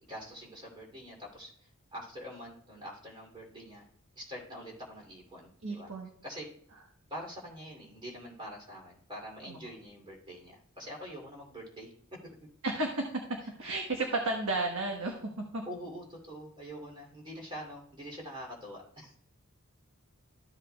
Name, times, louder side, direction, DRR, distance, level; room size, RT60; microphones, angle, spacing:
voice 1, 0.1-3.9 4.2-5.9 6.2-6.5 7.1-12.2 15.7-19.2, equal, 20° right, -2 dB, 2.7 m, -45 dB
voice 2, 5.6-6.1 9.4-9.6 12.6-13.1 13.6-15.2 15.5-15.6, right 2 dB, 85° right, 1 dB, 1.3 m, -32 dB
14.0 x 7.8 x 2.3 m, 0.67 s
head